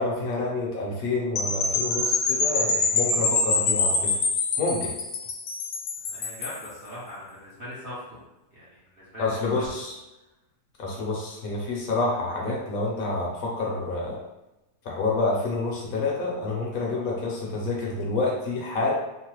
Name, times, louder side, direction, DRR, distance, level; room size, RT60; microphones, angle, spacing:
voice 1, 0.0-4.1 4.6-4.9 9.2-10.0 10.8-14.2 14.8-18.9, left 3 dB, 65° left, -3 dB, 1.0 m, -28 dB
sound 1, 1.4-6.7, left 3 dB, 90° left, 1.2 m, -25 dB
voice 2, 6.1-8.2 8.5-9.3 9.6-9.7, left 1 dB, 50° right, -9 dB, 0.7 m, -40 dB
3.0 x 2.0 x 3.0 m, 0.98 s
omnidirectional pair, 1.7 m